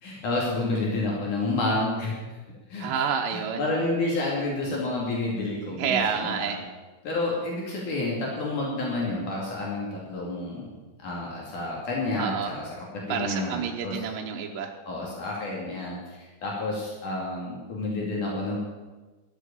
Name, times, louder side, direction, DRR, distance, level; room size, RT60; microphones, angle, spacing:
voice 1, 0.0-2.2 2.7-3.0 3.3-6.6 7.0-10.7 11.0-14.0 14.9-18.6, left 2 dB, 65° left, -3 dB, 4.0 m, -30 dB
voice 2, 2.8-3.7 5.8-6.6 12.2-12.5 13.1-14.7, right 7 dB, 85° right, 1 dB, 2.6 m, -29 dB
13.5 x 8.3 x 8.8 m, 1.2 s
omnidirectional pair, 3.8 m